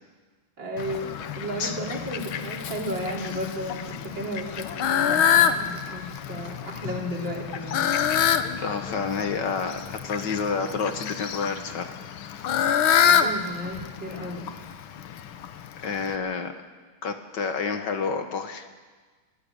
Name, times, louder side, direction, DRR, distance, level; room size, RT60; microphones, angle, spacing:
voice 1, 0.6-7.9 13.0-14.5, equal, 60° right, -1 dB, 4.2 m, -34 dB
Fowl, 0.8-16.2, left 8 dB, 80° left, 1.8 m, -27 dB
voice 2, 8.6-11.9 15.8-16.5 17.0-18.7, left 5 dB, 60° left, 7 dB, 1.8 m, -29 dB
21.0 x 15.0 x 8.8 m, 1.4 s
omnidirectional pair, 2.3 m